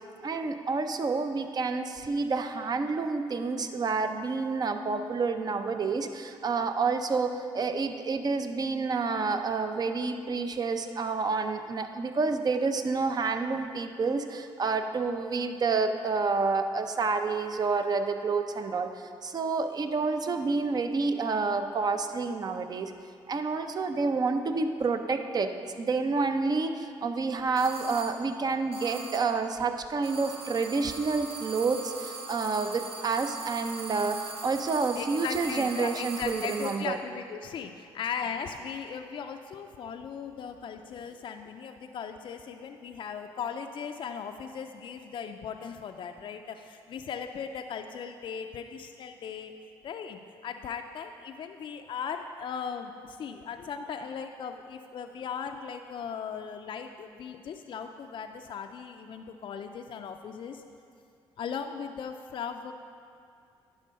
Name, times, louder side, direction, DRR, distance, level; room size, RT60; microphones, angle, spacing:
voice 1, 0.2-22.9 23.3-37.0, right 4 dB, 40° right, 7 dB, 0.6 m, -29 dB
sound 1, 27.6-28.3 28.7-29.5 30.0-36.9, right 3 dB, 70° right, 1.2 m, -41 dB
voice 2, 35.0-49.5 49.8-60.6 61.4-62.7, left 6 dB, 50° left, 5 dB, 0.4 m, -38 dB
10.5 x 3.8 x 5.3 m, 2.4 s
cardioid pair, 75°, 10 cm